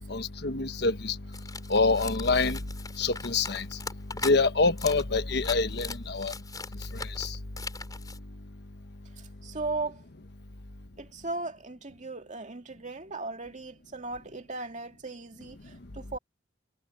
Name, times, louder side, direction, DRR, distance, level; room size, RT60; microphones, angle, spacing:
voice 1, 0.1-1.2 1.7-2.6 3.0-3.7 4.2-6.3 7.2-7.4, left 3 dB, 65° left, 1.2 m, -26 dB
sound 1, 1.3-4.4 4.8-5.0 5.3-8.2, left 4 dB, 20° left, 5.2 m, -40 dB
voice 2, 9.2-10.0 11.0-16.2, right 3 dB, 45° right, 2.4 m, -37 dB
head